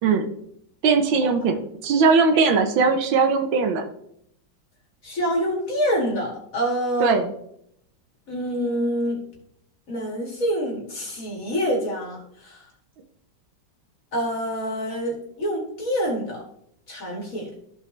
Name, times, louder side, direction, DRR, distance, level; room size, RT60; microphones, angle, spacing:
voice 1, 0.8-3.8 7.0-7.3, right 4 dB, 85° right, 5 dB, 1.7 m, -20 dB
voice 2, 5.0-7.2 8.3-9.2 9.9-12.6 14.1-16.4 16.9-17.5, equal, 45° left, -2 dB, 2.6 m, -26 dB
14.5 x 5.1 x 3.3 m, 0.72 s
omnidirectional pair, 2.1 m